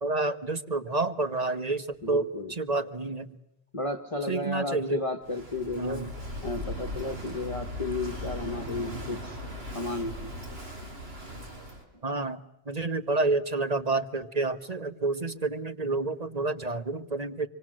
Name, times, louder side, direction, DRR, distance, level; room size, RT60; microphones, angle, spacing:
voice 1, 0.0-3.3 4.3-5.0 5.8-6.1 12.0-12.4 12.7-17.5, right 3 dB, 40° right, 9 dB, 1.3 m, -29 dB
voice 2, 2.0-2.5 3.7-6.1 6.4-9.4 9.7-10.3 11.9-12.0, left 2 dB, 35° left, 6 dB, 1.2 m, -33 dB
Walk footsteps / Wind / Waves surf, 5.2-11.8, left 1 dB, 75° right, 4.5 m, -38 dB
25.0 x 25.0 x 7.6 m, 0.87 s
omnidirectional pair, 1.1 m